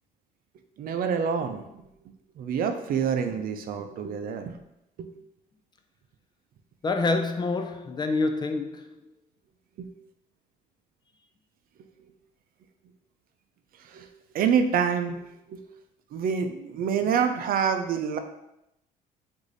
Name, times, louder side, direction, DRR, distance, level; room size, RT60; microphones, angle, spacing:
voice 1, 0.8-1.8 2.4-4.6 5.0-5.1 9.8-9.9 13.8-14.1 14.3-15.2 15.5-15.6 16.1-18.2, right 7 dB, 60° right, 0.5 m, -27 dB
voice 2, 6.8-9.0, left 3 dB, 25° left, 0.4 m, -27 dB
4.8 x 2.7 x 3.9 m
cardioid pair, 110°, 17 cm